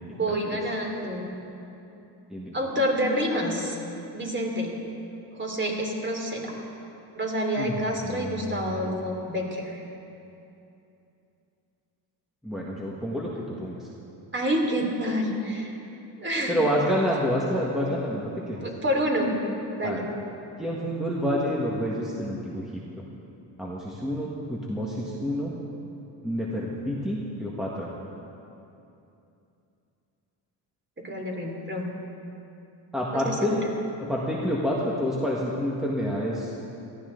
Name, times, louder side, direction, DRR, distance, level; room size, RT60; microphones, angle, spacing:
voice 1, 0.1-1.3 2.5-3.8 4.1-4.8 5.3-6.5 7.2-9.8 14.3-15.8 16.2-16.6 18.6-19.3 19.8-20.0 31.0-31.9 33.1-33.7, equal, 25° right, 0 dB, 3.1 m, -28 dB
voice 2, 8.0-9.0 12.4-13.8 16.5-18.7 19.8-20.0 20.6-22.6 23.0-23.1 23.6-25.6 26.2-27.9 32.9-33.6 34.0-36.5, equal, ahead, -5 dB, 1.7 m, -28 dB
18.0 x 13.5 x 4.0 m, 2.8 s
cardioid pair, 85°, 48 cm